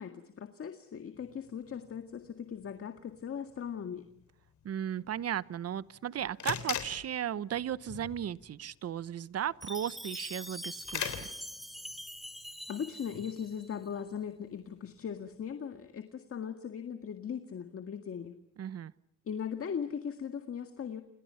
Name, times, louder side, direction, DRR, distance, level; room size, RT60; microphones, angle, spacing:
voice 1, 0.0-4.1 12.7-18.4 19.3-21.0, left 7 dB, 50° left, 7 dB, 1.9 m, -39 dB
sound 1, 1.1-15.5, left 9 dB, 70° left, 3.5 m, -45 dB
voice 2, 4.6-11.3 18.6-18.9, right 10 dB, 55° right, 18 dB, 1.0 m, -35 dB
Chime, 9.6-13.7, equal, ahead, 2.3 m, -44 dB
29.0 x 28.5 x 5.8 m, 0.69 s
cardioid pair, 90°, 30 cm